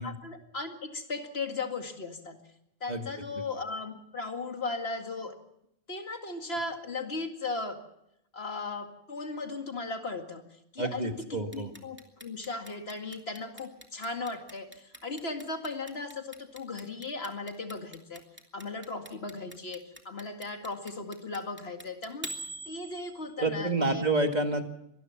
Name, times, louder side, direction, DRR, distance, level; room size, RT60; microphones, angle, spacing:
voice 1, 0.0-2.4 2.8-5.4 5.9-7.8 8.3-18.2 18.5-22.3 22.7-24.1, left 3 dB, 70° left, 5 dB, 2.4 m, -37 dB
voice 2, 10.8-11.7 23.4-24.6, right 2 dB, 40° right, 5 dB, 2.1 m, -29 dB
Clock, 11.5-23.5, right 1 dB, 10° right, 2.5 m, -44 dB
24.5 x 20.0 x 5.9 m, 0.81 s
omnidirectional pair, 1.1 m